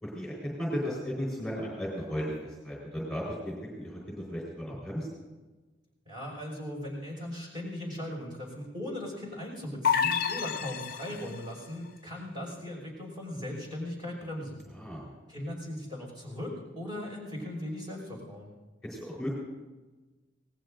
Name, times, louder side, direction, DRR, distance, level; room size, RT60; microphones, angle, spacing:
voice 1, 0.0-2.3 2.6-5.1 14.7-15.1 18.8-19.3, equal, ahead, -4 dB, 4.3 m, -35 dB
voice 2, 6.1-14.6 15.3-18.5, left 1 dB, 25° right, -2 dB, 5.7 m, -38 dB
sound 1, 9.8-11.5, left 7 dB, 50° left, 0.7 m, -29 dB
27.0 x 19.0 x 2.6 m, 1.2 s
head